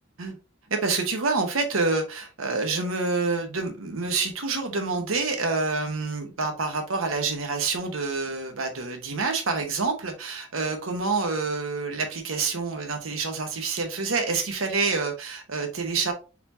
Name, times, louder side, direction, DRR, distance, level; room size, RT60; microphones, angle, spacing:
voice 1, 0.7-16.1, right 4 dB, 85° right, 5 dB, 0.9 m, -27 dB
4.2 x 4.1 x 2.6 m, 0.32 s
head